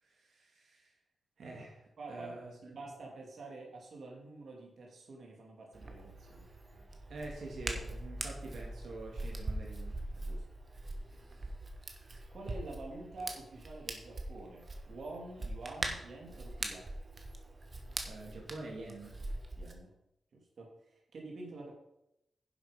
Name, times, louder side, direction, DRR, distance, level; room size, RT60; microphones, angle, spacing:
voice 1, 0.0-0.9 1.4-2.9 7.1-10.0 18.0-19.2, right 2 dB, 85° right, -1 dB, 2.6 m, -46 dB
voice 2, 2.0-6.5 10.1-10.4 12.3-16.9 19.6-19.9 20.3-21.8, right 2 dB, 65° right, 0 dB, 2.6 m, -48 dB
Hands, 5.7-19.7, right 2 dB, 35° right, 1.5 m, -42 dB
10.5 x 7.6 x 5.2 m, 0.83 s
wide cardioid pair, 145°, 0 cm